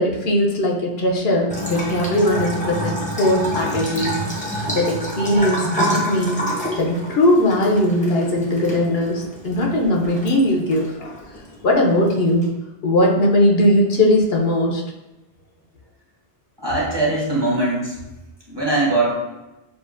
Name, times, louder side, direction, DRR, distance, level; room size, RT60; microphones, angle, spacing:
voice 1, 0.0-4.2 4.7-6.4 6.8-11.2 11.6-12.5 12.8-14.8, left 1 dB, 70° left, 0 dB, 0.9 m, -19 dB
Bathtub (filling or washing) / Trickle dribble, 1.5-12.5, equal, 10° left, 0.8 m, -28 dB
voice 2, 16.6-17.9 18.5-19.1, right 2 dB, 25° right, -5 dB, 1.2 m, -21 dB
6.8 x 2.4 x 2.5 m, 1.0 s
omnidirectional pair, 1.0 m